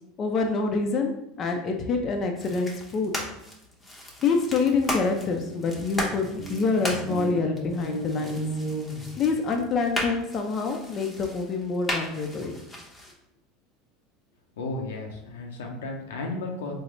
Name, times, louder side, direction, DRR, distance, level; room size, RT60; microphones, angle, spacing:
voice 1, 0.2-1.1 1.4-3.1 4.2-8.4 9.2-12.5, left 4 dB, 40° left, 3 dB, 0.5 m, -26 dB
sound 1, 2.4-13.1, equal, 20° left, 0.8 m, -36 dB
sound 2, 4.4-4.5 4.7-9.8, equal, 30° right, 0.7 m, -35 dB
voice 2, 14.6-16.7, left 2 dB, 85° left, 2 dB, 0.6 m, -34 dB
3.7 x 2.0 x 3.1 m, 0.82 s
supercardioid pair, 100°, 0 cm